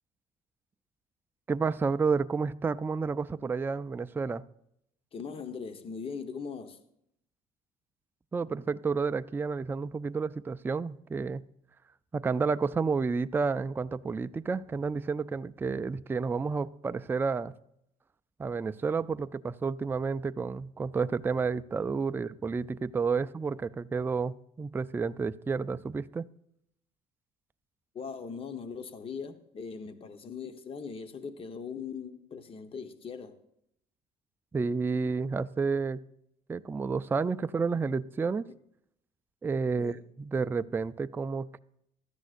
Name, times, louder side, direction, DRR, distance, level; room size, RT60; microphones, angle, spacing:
voice 1, 1.5-4.4 8.3-11.4 12.1-17.5 18.4-26.3 34.5-36.0 36.5-38.4 39.4-41.6, right 5 dB, 15° right, 0.4 m, -30 dB
voice 2, 5.1-6.8 27.9-33.4 39.8-40.0, left 5 dB, 35° left, 1.1 m, -40 dB
16.5 x 13.0 x 2.5 m
cardioid pair, 120°, 16 cm